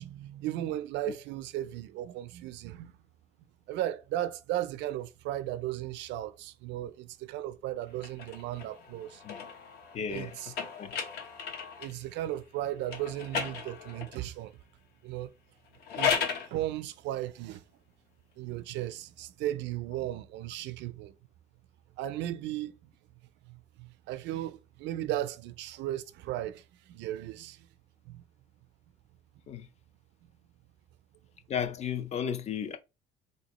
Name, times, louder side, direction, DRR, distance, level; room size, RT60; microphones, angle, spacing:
voice 1, 0.0-3.0 3.7-9.2 10.1-10.5 11.8-14.6 15.0-15.3 15.9-17.6 18.4-21.1 22.0-22.9 23.4-27.7 28.0-28.2 30.2-30.3, right 13 dB, 75° right, 0.4 m, -36 dB
sound 1, 8.0-12.0 12.9-14.2 15.7-16.5, left 7 dB, 60° left, 0.9 m, -35 dB
voice 2, 9.9-10.3 10.7-10.9 29.5-29.7 31.5-32.8, left 8 dB, 35° left, 0.5 m, -34 dB
3.5 x 2.7 x 3.0 m
cardioid pair, 135°, 19 cm